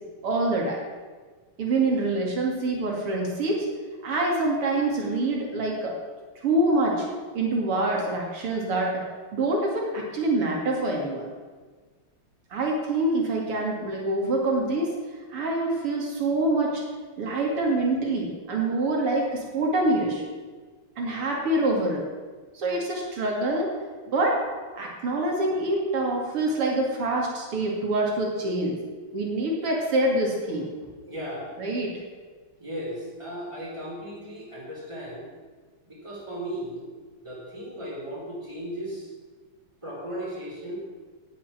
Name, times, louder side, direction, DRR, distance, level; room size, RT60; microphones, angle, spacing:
voice 1, 0.2-0.8 1.6-3.7 4.0-5.9 6.4-7.1 7.3-9.0 9.3-11.3 12.5-14.9 15.3-16.8 17.2-20.2 21.0-22.0 22.5-23.8 24.1-24.4 24.7-28.8 29.1-30.7 31.6-31.9, right 2 dB, 85° right, -1 dB, 3.4 m, -25 dB
voice 2, 31.0-31.5 32.6-35.2 35.8-36.8 37.2-39.1 39.8-40.8, equal, 10° right, -4 dB, 4.7 m, -36 dB
18.5 x 7.2 x 7.5 m, 1.4 s
omnidirectional pair, 2.4 m